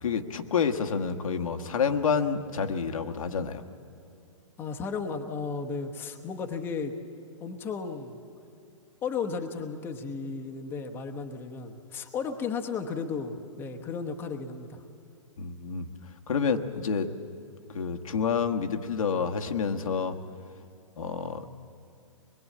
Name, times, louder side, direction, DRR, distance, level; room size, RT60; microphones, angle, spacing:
voice 1, 0.0-3.6 15.4-15.9 16.3-17.1 17.7-20.2 21.0-21.6, left 6 dB, 85° left, 5 dB, 1.5 m, -28 dB
voice 2, 4.6-6.9 7.4-8.2 9.0-14.8, left 5 dB, 10° left, 3 dB, 0.9 m, -34 dB
23.5 x 21.5 x 8.5 m, 2.5 s
hypercardioid pair, 160°, 17 cm